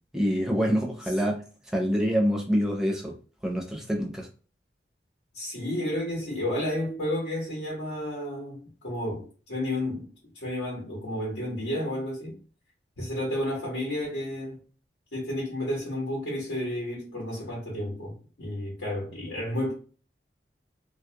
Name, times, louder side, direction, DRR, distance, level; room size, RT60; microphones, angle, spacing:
voice 1, 0.1-3.2 3.4-4.3, equal, 5° right, 0.5 m, -26 dB
voice 2, 5.3-12.4 13.0-14.6 15.1-19.7, left 1 dB, 80° left, 0.9 m, -31 dB
2.3 x 2.0 x 2.7 m
head